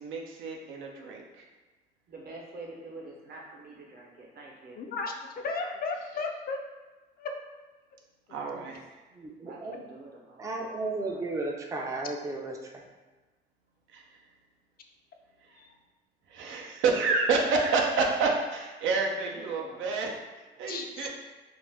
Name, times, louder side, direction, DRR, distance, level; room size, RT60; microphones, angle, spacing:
voice 1, 0.0-1.4 8.3-8.8 13.9-14.0 16.3-20.1 20.6-21.1, right 4 dB, 80° right, 0 dB, 0.5 m, -28 dB
voice 2, 2.1-4.8 8.3-8.8 9.4-11.4 19.0-20.1 20.5-20.6, right 2 dB, 50° right, -2 dB, 0.8 m, -47 dB
voice 3, 4.8-6.6 7.2-7.3 15.6-15.7 20.7-21.1, left 4 dB, 50° left, 3 dB, 0.4 m, -34 dB
voice 4, 9.2-9.8 10.4-12.7, right 2 dB, 15° right, 1 dB, 0.4 m, -34 dB
2.5 x 2.2 x 3.3 m, 1.2 s
cardioid pair, 90°, 20 cm